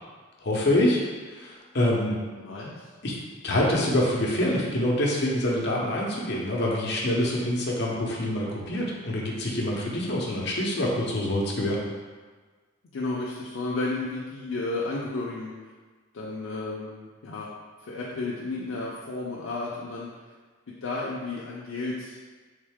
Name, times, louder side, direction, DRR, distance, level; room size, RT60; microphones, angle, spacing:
voice 1, 0.4-1.0 1.3-2.1 3.0-3.2 3.4-11.8, left 1 dB, 55° left, -3 dB, 0.8 m, -26 dB
voice 2, 2.4-2.9 12.9-15.5 16.1-17.5 17.8-20.1 20.8-22.2, left 2 dB, 85° left, -5 dB, 0.5 m, -32 dB
3.6 x 3.2 x 3.5 m, 1.4 s
head